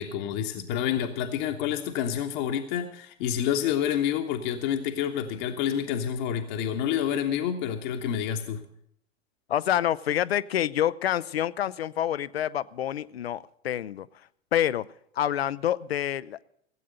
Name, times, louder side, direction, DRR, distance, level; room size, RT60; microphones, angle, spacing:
voice 1, 0.0-8.6, left 9 dB, 50° left, 5 dB, 1.1 m, -28 dB
voice 2, 9.5-14.1 14.5-14.8 15.2-16.4, left 11 dB, 70° left, 19 dB, 0.6 m, -27 dB
16.5 x 8.5 x 6.6 m, 0.70 s
figure-of-eight pair, 85°, 32 cm